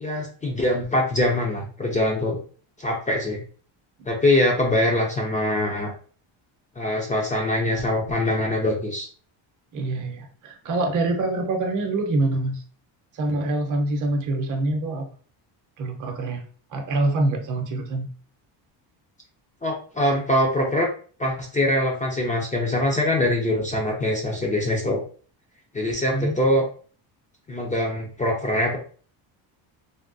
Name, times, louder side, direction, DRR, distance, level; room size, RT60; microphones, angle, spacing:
voice 1, 0.0-2.4 2.8-3.4 4.1-5.9 6.8-9.1 19.6-20.9 21.2-25.0 25.7-26.6 27.5-28.8, left 1 dB, 20° left, -1 dB, 0.3 m, -23 dB
voice 2, 9.7-12.6 13.1-15.0 15.8-16.4 16.7-18.1 26.1-26.4, right 2 dB, 40° right, 3 dB, 0.7 m, -25 dB
3.4 x 2.2 x 2.5 m, 0.42 s
cardioid pair, 145°, 48 cm